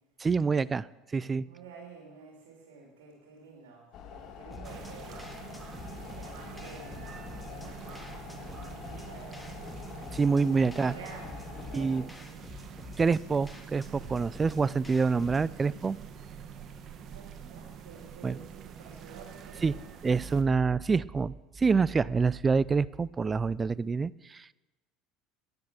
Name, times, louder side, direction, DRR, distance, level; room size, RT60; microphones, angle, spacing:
voice 1, 0.2-1.5 10.1-10.9 11.7-12.0 13.0-16.0 18.2-18.4 19.6-19.7 20.0-24.5, right 4 dB, 25° right, 20 dB, 0.3 m, -27 dB
voice 2, 1.4-5.3 6.1-7.1 7.4-9.7 10.5-12.4 17.0-19.8, right 5 dB, 85° right, -1 dB, 2.8 m, -50 dB
sound 1, 3.9-12.0, left 7 dB, 55° left, 1.6 m, -46 dB
sound 2, 4.5-15.5, left 2 dB, 5° left, 1.8 m, -48 dB
sound 3, 4.6-20.4, right 7 dB, 50° right, 1.2 m, -46 dB
10.5 x 10.0 x 6.8 m, 1.1 s
supercardioid pair, 90°, 0 cm